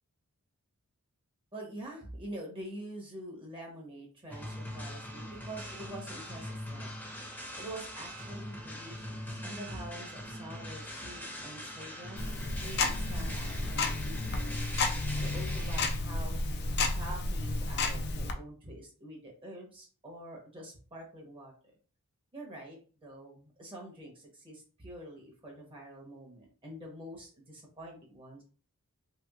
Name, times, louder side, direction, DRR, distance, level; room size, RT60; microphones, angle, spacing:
voice 1, 1.5-6.9 7.6-12.2 12.6-16.4 16.9-21.5 22.3-28.4, right 1 dB, 25° right, -1 dB, 0.8 m, -46 dB
sound 1, 4.3-16.0, equal, 10° left, 0.7 m, -42 dB
Tick-tock, 12.2-18.3, left 3 dB, 45° left, 0.4 m, -32 dB
3.2 x 2.9 x 2.3 m, 0.39 s
head